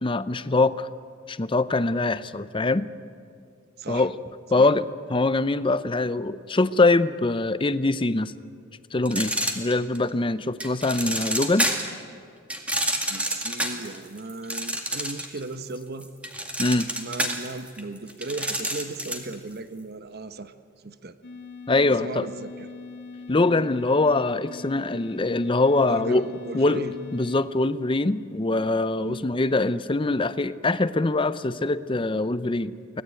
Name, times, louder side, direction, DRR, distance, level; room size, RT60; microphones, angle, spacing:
voice 1, 0.0-0.9 1.3-2.9 3.9-4.1 4.5-8.3 8.9-11.7 16.6-16.9 21.7-22.3 23.3-26.2 26.5-26.8 27.1-33.0, left 2 dB, 25° left, 14 dB, 0.6 m, -23 dB
sound 1, 9.1-10.1 10.6-12.0 12.5-15.4 15.7-19.3, right 1 dB, 5° right, 2.1 m, -28 dB
voice 2, 13.0-16.1 17.0-20.5 20.8-21.2 21.9-22.7 25.8-26.9 29.0-29.3, right 2 dB, 50° right, 11 dB, 1.0 m, -36 dB
sound 2, 21.2-27.4, left 4 dB, 55° left, 2.1 m, -41 dB
25.0 x 18.0 x 9.0 m, 2.4 s
head